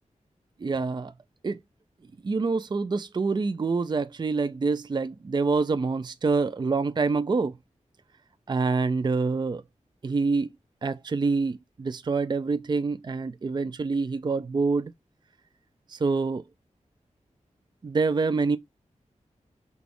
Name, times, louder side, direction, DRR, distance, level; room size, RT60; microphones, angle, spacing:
voice 1, 0.6-1.1 1.4-1.6 2.2-7.6 8.5-9.6 10.0-10.5 10.8-14.9 15.9-16.4 17.8-18.6, right 4 dB, 35° right, 0.4 m, -26 dB
5.9 x 2.3 x 3.5 m
wide cardioid pair, 80°, 13 cm